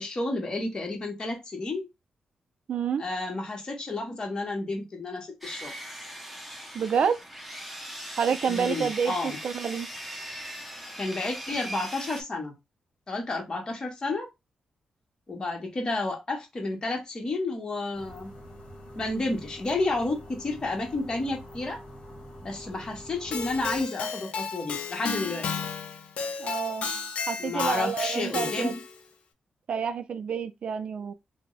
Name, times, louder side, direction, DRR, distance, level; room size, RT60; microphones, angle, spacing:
voice 1, 0.0-1.9 3.0-5.7 8.5-9.4 11.0-12.5 13.1-14.3 15.3-18.3 18.9-21.8 22.4-25.5 27.4-28.8, left 2 dB, 40° left, 1.2 m, -31 dB
voice 2, 2.7-3.0 6.7-7.2 8.2-9.9 26.4-26.9 27.3-28.7 29.7-31.1, right 7 dB, 65° right, 0.4 m, -28 dB
Sawing, 5.4-12.2, equal, 5° right, 0.8 m, -39 dB
sound 1, 17.9-23.8, equal, 60° left, 1.2 m, -45 dB
Keyboard (musical), 23.3-29.0, left 5 dB, 80° left, 0.5 m, -33 dB
2.6 x 2.1 x 3.9 m
cardioid pair, 85°, 2 cm